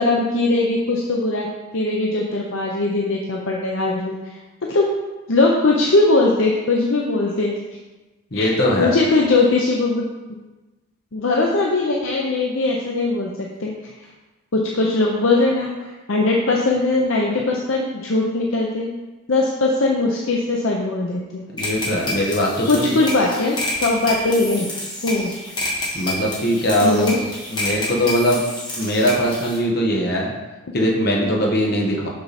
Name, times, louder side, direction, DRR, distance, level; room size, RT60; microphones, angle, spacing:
voice 1, 0.0-4.2 4.6-4.9 5.3-7.6 8.3-8.5 8.8-10.1 11.1-13.9 14.5-18.9 19.3-21.4 22.7-24.7 25.0-25.3 26.8-27.2, left 2 dB, 60° left, -2 dB, 0.7 m, -20 dB
voice 2, 8.3-9.0 21.5-22.9 25.9-27.1 27.5-28.4 28.8-30.3 30.7-32.1, equal, 45° left, -1 dB, 1.3 m, -20 dB
sound 1, 21.6-29.6, left 2 dB, 20° left, 1.6 m, -29 dB
6.3 x 6.0 x 4.2 m, 1.2 s
head